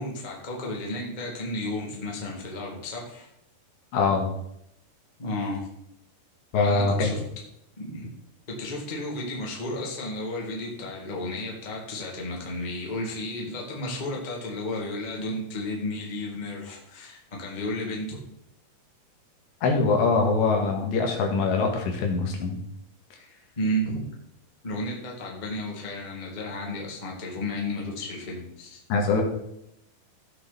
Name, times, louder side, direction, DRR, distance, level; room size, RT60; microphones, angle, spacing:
voice 1, 0.0-3.3 5.2-5.7 6.5-7.2 7.8-8.1 8.5-18.2 23.5-24.0 24.6-28.8, left 1 dB, 20° left, -2 dB, 1.1 m, -33 dB
voice 2, 3.9-4.3 6.5-7.2 19.6-22.5 28.9-29.2, left 4 dB, 85° left, 2 dB, 4.0 m, -23 dB
15.5 x 6.2 x 4.2 m, 0.80 s
omnidirectional pair, 4.9 m